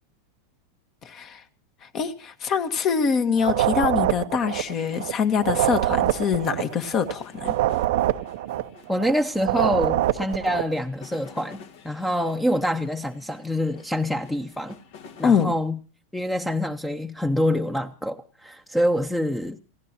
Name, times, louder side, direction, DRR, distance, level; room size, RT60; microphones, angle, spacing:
voice 1, 1.0-1.4 1.8-7.6 15.2-15.5, left 6 dB, 40° left, 1.5 m, -24 dB
sound 1, 3.4-5.1 5.4-9.1 9.4-10.7, right 14 dB, 70° right, 0.7 m, -25 dB
sound 2, 4.4-15.4, left 7 dB, 65° left, 2.2 m, -50 dB
voice 2, 8.9-11.6 11.8-14.8 15.2-15.8 16.1-19.6, equal, 5° left, 0.9 m, -26 dB
29.5 x 15.5 x 3.0 m
hypercardioid pair, 105°, 0 cm